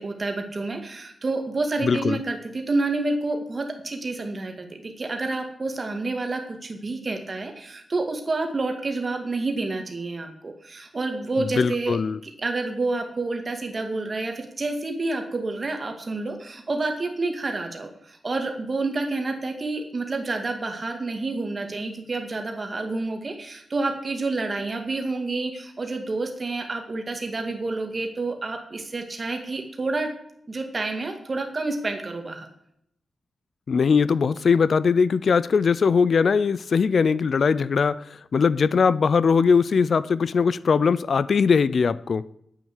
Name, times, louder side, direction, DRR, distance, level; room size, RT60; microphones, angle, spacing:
voice 1, 0.0-12.0 12.2-30.1 30.5-32.5, right 3 dB, 35° right, 2.3 m, -29 dB
voice 2, 1.8-2.2 11.6-12.2 33.7-38.0 38.3-42.2, left 5 dB, 55° left, 0.5 m, -20 dB
9.4 x 8.7 x 8.1 m
wide cardioid pair, 130°, 0 cm